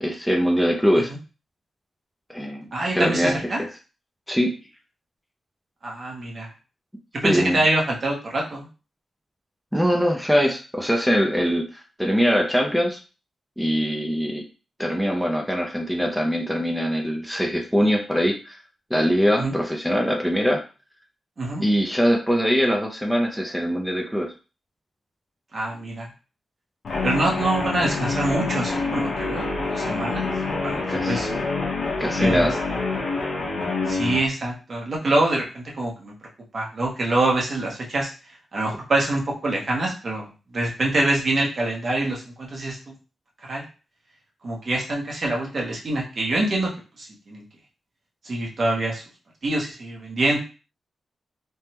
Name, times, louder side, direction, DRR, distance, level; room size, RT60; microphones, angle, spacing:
voice 1, 0.0-1.1 2.3-2.7 2.9-3.7 4.3-4.5 7.2-7.6 9.7-13.0 13.6-14.4 14.8-18.6 18.9-20.6 21.6-24.3 30.9-31.3 32.0-32.5, equal, ahead, 2 dB, 0.4 m, -22 dB
voice 2, 2.7-3.6 5.8-6.5 7.1-8.7 19.4-19.5 21.4-21.6 25.5-26.1 27.0-30.3 30.6-31.3 32.2-32.5 33.9-36.1 36.5-38.1 38.5-42.9 43.5-43.6 44.4-46.7 47.0-47.4 48.2-49.0 49.4-50.4, right 2 dB, 45° right, -1 dB, 0.9 m, -25 dB
Guitar, 26.8-34.3, left 3 dB, 65° left, 0.8 m, -26 dB
3.4 x 2.1 x 2.9 m, 0.34 s
wide cardioid pair, 145°, 0 cm